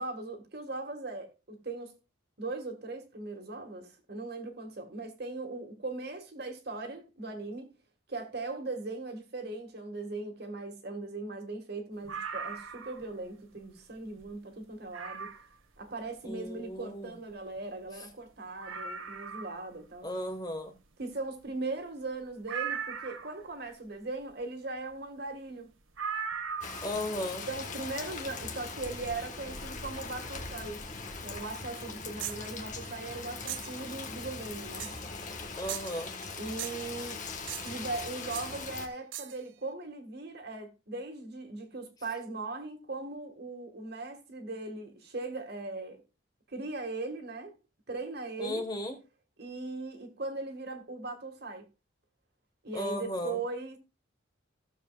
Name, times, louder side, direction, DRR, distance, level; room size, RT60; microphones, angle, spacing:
voice 1, 0.0-2.0 2.4-7.7 8.1-15.3 15.8-20.1 21.0-25.7 27.5-30.8 31.2-34.9 36.4-37.2 37.6-46.0 46.5-47.5 47.9-48.7 49.4-51.6 52.6-53.8, right 3 dB, 50° right, 1.9 m, -39 dB
sound 1, 12.0-13.1 13.6-13.7 14.2-14.3 14.9-15.5 17.3-17.4 17.6-17.7 18.1-18.2 18.6-19.7 22.5-23.4 26.0-27.0 28.3-28.4, right 6 dB, 90° right, 1.7 m, -38 dB
voice 2, 16.2-17.1 20.0-20.7 26.8-27.5 35.5-36.1 48.4-49.0 52.7-53.4, left 1 dB, 20° left, 1.6 m, -35 dB
Rain, 26.6-38.9, left 4 dB, 40° left, 1.6 m, -41 dB
sound 2, 32.2-32.5 33.5-33.8 34.8-35.1 35.7-36.3 36.6-36.9 37.5-37.9 38.3-38.5 39.1-39.4, right 12 dB, 70° right, 0.9 m, -40 dB
16.0 x 7.2 x 2.5 m
head